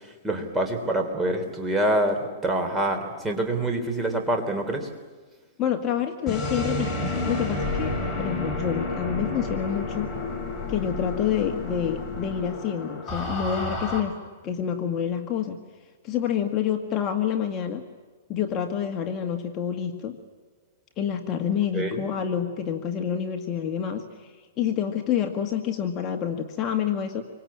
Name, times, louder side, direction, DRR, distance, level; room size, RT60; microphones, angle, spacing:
voice 1, 0.2-4.9 21.7-22.0, right 1 dB, 10° right, 5 dB, 3.3 m, -26 dB
voice 2, 5.6-10.1 10.7-14.2 14.4-15.6 16.0-17.8 18.3-20.2 21.0-27.2, left 8 dB, 25° left, 4 dB, 1.7 m, -28 dB
sound 1, 6.3-14.0, left 2 dB, 10° left, 4.2 m, -30 dB
27.5 x 24.5 x 8.8 m, 1.4 s
hypercardioid pair, 150°, 0 cm